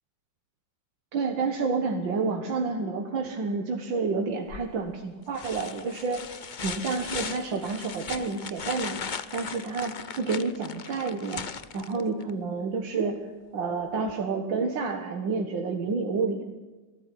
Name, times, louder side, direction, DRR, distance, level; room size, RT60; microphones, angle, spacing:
voice 1, 1.1-6.2 6.6-9.0 9.3-11.4 11.7-13.2 13.5-16.4, right 4 dB, 85° right, 4 dB, 2.3 m, -29 dB
sound 1, 4.5-4.9 5.3-12.3 14.1-14.2, left 6 dB, 45° left, 0.6 m, -38 dB
21.0 x 14.0 x 9.9 m, 1.3 s
omnidirectional pair, 2.0 m